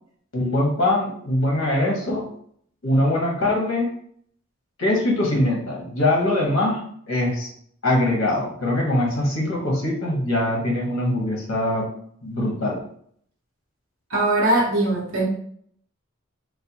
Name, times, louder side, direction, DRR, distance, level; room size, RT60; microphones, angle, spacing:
voice 1, 0.3-2.3 2.8-3.9 4.8-7.5 7.8-11.9 12.2-12.8, left 1 dB, 75° left, -1 dB, 0.9 m, -22 dB
voice 2, 14.1-15.2, right 1 dB, 80° right, -4 dB, 0.8 m, -20 dB
3.2 x 2.2 x 2.8 m, 0.62 s
head